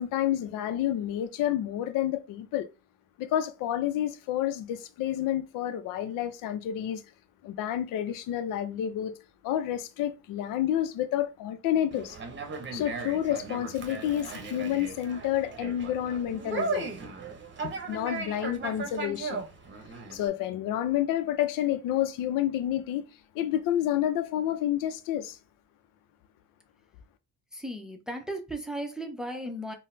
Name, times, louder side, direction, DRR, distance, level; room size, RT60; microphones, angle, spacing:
voice 1, 0.0-2.7 3.2-7.0 7.4-9.1 9.4-12.2 12.7-16.9 17.6-19.4 20.1-23.0 23.3-25.4, left 11 dB, 75° left, 0.5 m, -29 dB
Conversation, 11.9-20.3, right 4 dB, 35° right, 0.8 m, -37 dB
voice 2, 27.5-29.7, right 1 dB, ahead, 0.6 m, -36 dB
3.9 x 2.0 x 2.5 m
supercardioid pair, 65°, 33 cm